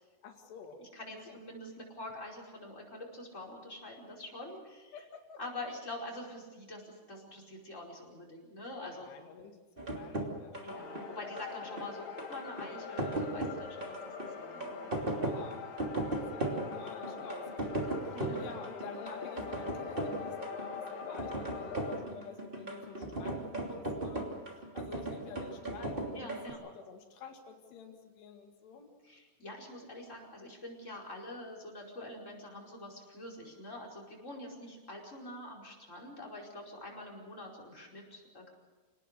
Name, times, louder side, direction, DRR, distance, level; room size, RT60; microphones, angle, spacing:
voice 1, 0.2-0.8 1.3-1.4 4.5-4.6 4.9-5.4 8.8-10.9 15.1-15.7 16.0-17.9 18.4-24.4 24.7-28.9, left 5 dB, 80° left, 3 dB, 4.3 m, -49 dB
voice 2, 0.8-5.0 5.4-9.1 10.6-14.0 14.3-15.0 18.1-18.5 26.1-26.6 29.0-38.5, left 1 dB, 15° left, -2 dB, 5.0 m, -45 dB
sound 1, 9.8-26.5, right 2 dB, 15° right, 2.3 m, -37 dB
sound 2, 10.7-22.0, left 6 dB, 65° left, 5.8 m, -44 dB
27.5 x 19.0 x 6.7 m, 1.3 s
omnidirectional pair, 4.7 m